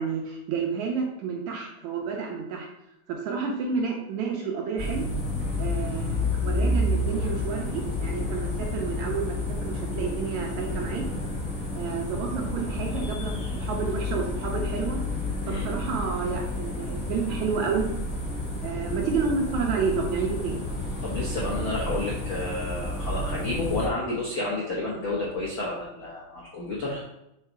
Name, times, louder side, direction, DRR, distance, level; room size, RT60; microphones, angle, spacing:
voice 1, 0.0-2.7 3.1-5.1 5.6-11.0 11.7-15.0 15.5-17.9 18.6-20.6, right 5 dB, 75° right, 0 dB, 1.7 m, -30 dB
sound 1, 4.8-23.9, left 2 dB, 35° left, 1.1 m, -30 dB
voice 2, 21.0-27.0, left 2 dB, 80° left, -5 dB, 1.1 m, -30 dB
5.6 x 4.0 x 4.7 m, 0.84 s
omnidirectional pair, 4.1 m